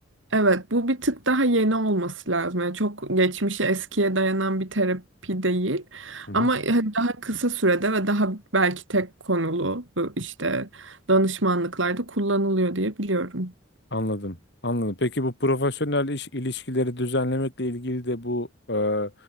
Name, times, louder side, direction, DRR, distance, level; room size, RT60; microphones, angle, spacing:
voice 1, 0.3-13.5, right 2 dB, 80° right, 3.8 m, -24 dB
voice 2, 13.9-14.4 14.6-19.1, left 1 dB, 60° left, 3.3 m, -26 dB
head